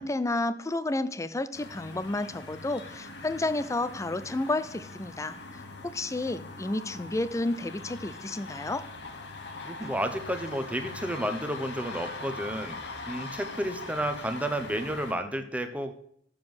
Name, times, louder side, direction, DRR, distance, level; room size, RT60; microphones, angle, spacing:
voice 1, 0.0-5.4 5.8-8.9, left 2 dB, 15° left, 14 dB, 0.5 m, -31 dB
sound 1, 1.5-15.1, left 3 dB, 65° left, 1.2 m, -42 dB
voice 2, 9.6-12.8 13.1-15.9, right 1 dB, 5° right, 8 dB, 0.9 m, -31 dB
7.4 x 6.9 x 6.1 m, 0.65 s
head